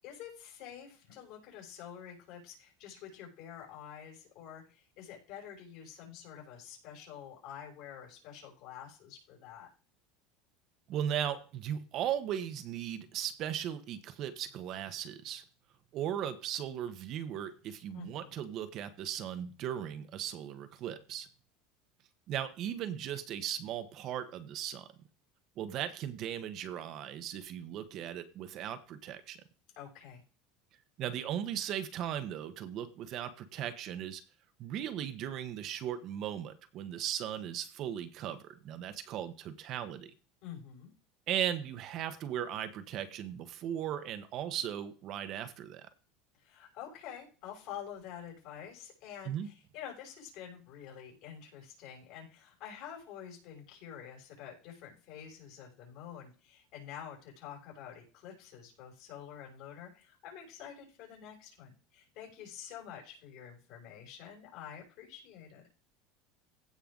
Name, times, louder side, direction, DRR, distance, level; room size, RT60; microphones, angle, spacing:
voice 1, 0.0-9.7 17.9-18.4 29.8-30.2 40.4-40.9 46.4-65.6, left 9 dB, 60° left, -1 dB, 6.6 m, -48 dB
voice 2, 10.9-15.4 15.9-21.3 22.3-24.9 25.6-29.4 31.0-34.2 34.6-40.1 41.3-45.9 49.2-49.5, right 10 dB, 50° right, 11 dB, 1.3 m, -37 dB
16.0 x 5.6 x 3.9 m, 0.37 s
supercardioid pair, 115°, 0 cm